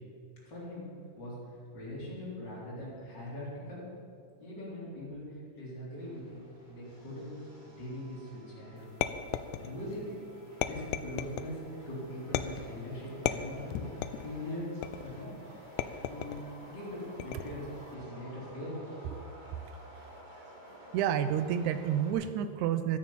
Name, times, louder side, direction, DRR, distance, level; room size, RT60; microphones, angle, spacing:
voice 1, 0.4-0.9 1.1-1.3 1.7-3.8 4.4-7.4 7.6-8.8 9.3-10.1 10.6-11.6 11.9-14.7 15.0-15.3 15.7-19.3, left 1 dB, 30° left, -7 dB, 4.6 m, -42 dB
Subway metro underground, 6.0-22.1, equal, 15° right, 2.2 m, -52 dB
sound 1, 9.0-9.9 10.6-11.5 12.3-12.8 13.3-14.3 14.8-15.2 15.8-16.4 17.2-17.7, left 11 dB, 80° left, 1.9 m, -35 dB
voice 2, 20.9-23.0, right 9 dB, 75° right, 10 dB, 1.8 m, -29 dB
14.0 x 9.7 x 7.3 m, 2.3 s
omnidirectional pair, 3.8 m